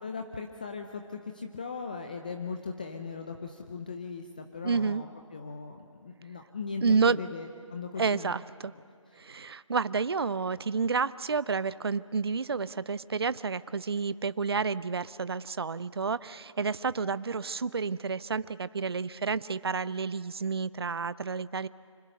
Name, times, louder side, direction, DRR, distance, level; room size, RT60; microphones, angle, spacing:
voice 1, 0.0-8.3 9.1-9.2, left 4 dB, 15° left, 4 dB, 0.6 m, -39 dB
voice 2, 4.6-5.0 6.8-7.2 8.0-8.7 9.2-21.7, right 5 dB, 50° right, 18 dB, 0.5 m, -30 dB
27.5 x 25.5 x 6.6 m, 2.2 s
figure-of-eight pair, 165°, 17 cm